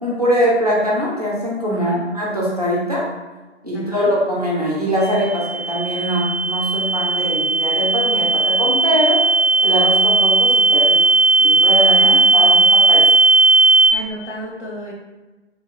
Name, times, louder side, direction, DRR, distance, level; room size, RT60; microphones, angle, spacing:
voice 1, 0.0-3.1 3.6-9.2 9.6-11.0 11.4-13.0, equal, 35° right, -5 dB, 0.4 m, -22 dB
voice 2, 1.7-2.0 3.7-4.1 11.9-12.6 13.9-14.9, right 1 dB, 80° left, -4 dB, 1.0 m, -32 dB
sound 1, 5.0-13.9, right 3 dB, 55° left, 0.9 m, -15 dB
2.8 x 2.5 x 2.2 m, 1.2 s
figure-of-eight pair, 150°, 35 cm